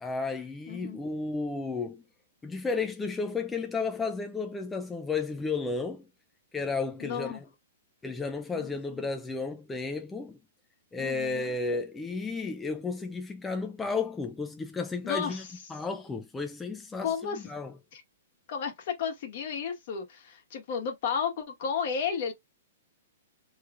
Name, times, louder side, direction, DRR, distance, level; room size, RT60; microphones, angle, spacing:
voice 1, 0.0-2.0 2.4-6.1 6.5-7.4 8.0-10.4 10.9-15.4 15.7-17.7, left 4 dB, 10° left, 0.3 m, -33 dB
voice 2, 0.7-1.0 7.0-7.4 8.5-9.1 11.0-11.5 15.0-15.5 17.0-17.5 17.9-18.0 18.5-22.3, left 6 dB, 55° left, 1.3 m, -33 dB
3.1 x 2.3 x 3.4 m
hypercardioid pair, 145°, 0 cm